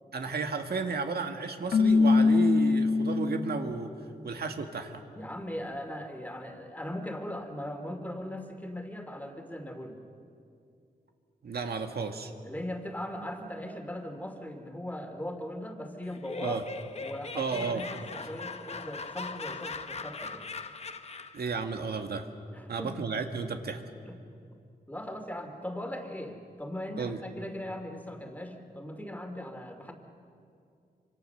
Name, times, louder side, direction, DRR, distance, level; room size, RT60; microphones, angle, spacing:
voice 1, 0.1-3.9 4.2-5.0 11.4-12.3 16.4-16.6 17.3-17.8 21.3-22.2 22.7-23.8 27.0-27.2, right 4 dB, 80° right, 5 dB, 1.8 m, -33 dB
Keyboard (musical), 1.7-3.7, left 4 dB, 65° left, 1.2 m, -23 dB
voice 2, 5.1-10.0 12.4-16.6 17.0-20.5 22.5-22.9 24.0-24.2 24.9-29.9, left 1 dB, 10° left, 5 dB, 2.5 m, -39 dB
Laughter, 16.0-21.5, left 4 dB, 40° left, 1.0 m, -40 dB
26.0 x 25.5 x 6.8 m, 2.4 s
wide cardioid pair, 120°, 16 cm